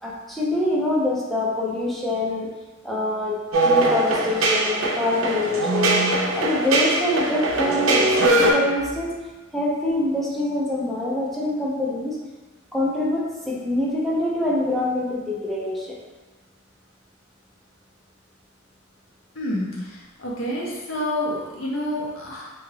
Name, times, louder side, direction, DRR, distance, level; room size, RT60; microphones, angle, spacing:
voice 1, 0.0-2.5 2.8-6.1 6.4-9.2 9.5-12.2 12.7-16.0, left 1 dB, ahead, -5 dB, 0.4 m, -25 dB
sound 1, 3.5-8.5, right 2 dB, 75° right, 0.5 m, -21 dB
voice 2, 19.4-22.5, left 1 dB, 70° left, -4 dB, 0.7 m, -28 dB
2.8 x 2.3 x 3.1 m, 1.2 s
head